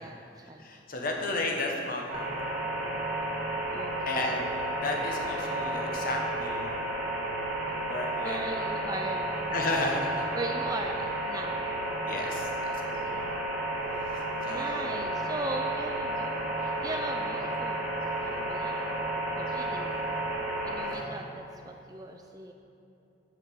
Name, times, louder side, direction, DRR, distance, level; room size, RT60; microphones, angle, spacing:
voice 1, 0.0-0.7 3.7-4.3 8.2-9.3 10.3-11.6 12.8-13.4 14.5-16.3 16.6-17.9 18.2-18.9 19.4-20.0 20.6-22.5, right 2 dB, 20° right, 3 dB, 0.4 m, -38 dB
voice 2, 0.6-2.5 4.1-4.5 4.7-6.7 7.8-8.4 9.5-10.3 12.1-13.0 14.4-15.1, left 2 dB, 50° left, 1 dB, 1.2 m, -33 dB
sound 1, 2.1-20.9, right 1 dB, 45° right, 2.2 m, -32 dB
7.2 x 6.7 x 7.0 m, 2.8 s
head